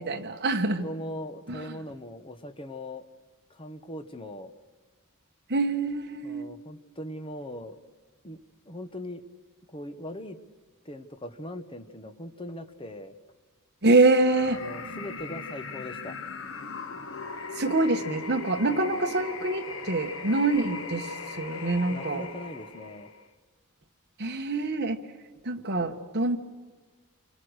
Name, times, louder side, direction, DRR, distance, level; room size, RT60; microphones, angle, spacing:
voice 1, 0.0-0.8 1.5-1.7 5.5-6.5 13.8-14.6 17.6-22.3 24.2-25.0 25.4-26.4, right 2 dB, 50° right, 4 dB, 1.5 m, -25 dB
voice 2, 0.8-3.1 3.5-4.5 6.2-7.8 8.2-8.4 8.6-9.2 9.7-10.4 10.8-13.1 14.5-16.2 21.9-23.1, left 1 dB, 25° left, 9 dB, 1.2 m, -40 dB
sound 1, 14.2-23.3, left 4 dB, 65° left, 1.5 m, -39 dB
28.0 x 23.5 x 6.5 m, 1.4 s
head